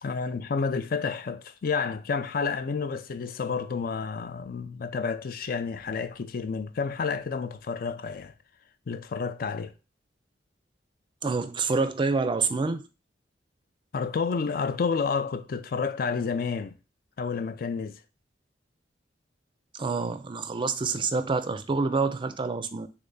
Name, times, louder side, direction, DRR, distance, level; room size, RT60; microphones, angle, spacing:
voice 1, 0.0-8.3 8.9-9.7 13.9-16.7 17.2-18.0, left 5 dB, 55° left, 0.4 m, -30 dB
voice 2, 11.2-12.8 19.7-22.9, right 4 dB, 25° right, 0.4 m, -27 dB
3.5 x 3.4 x 3.9 m
head